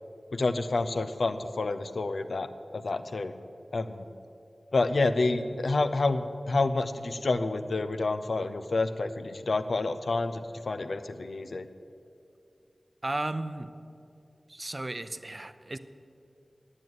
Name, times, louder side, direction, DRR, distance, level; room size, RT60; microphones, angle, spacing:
voice 1, 0.3-3.3 3.7-4.1 4.7-11.7, left 3 dB, 85° left, 10 dB, 0.6 m, -29 dB
voice 2, 13.0-13.7 14.5-15.8, right 2 dB, 35° right, 11 dB, 0.5 m, -34 dB
9.9 x 7.7 x 9.3 m, 2.4 s
wide cardioid pair, 75°, 0 cm